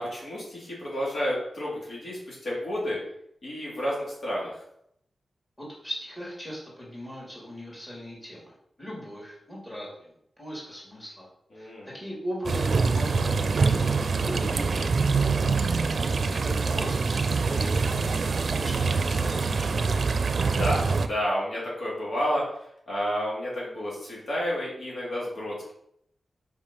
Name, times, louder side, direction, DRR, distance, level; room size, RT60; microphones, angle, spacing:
voice 1, 0.0-3.0 3.4-4.6 11.5-11.9 15.2-15.5 20.6-22.4 22.9-25.7, equal, 65° left, -5 dB, 2.9 m, -31 dB
voice 2, 5.6-8.5 8.8-10.1 10.4-11.3 11.5-15.1 16.0-19.8, equal, 10° left, -5 dB, 2.9 m, -39 dB
sound 1, 12.4-21.1, right 4 dB, 60° right, 0.6 m, -25 dB
5.4 x 5.0 x 5.4 m, 0.73 s
wide cardioid pair, 95°, 0 cm